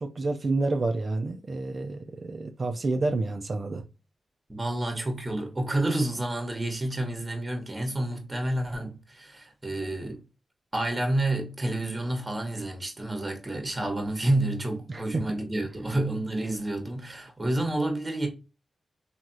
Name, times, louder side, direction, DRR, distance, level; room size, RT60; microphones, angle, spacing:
voice 1, 0.0-3.8 14.9-15.2, right 3 dB, 50° right, 0.4 m, -29 dB
voice 2, 4.5-10.2 10.7-18.3, right 1 dB, 25° right, 1.0 m, -29 dB
3.3 x 2.4 x 2.5 m
cardioid pair, 55°, 0 cm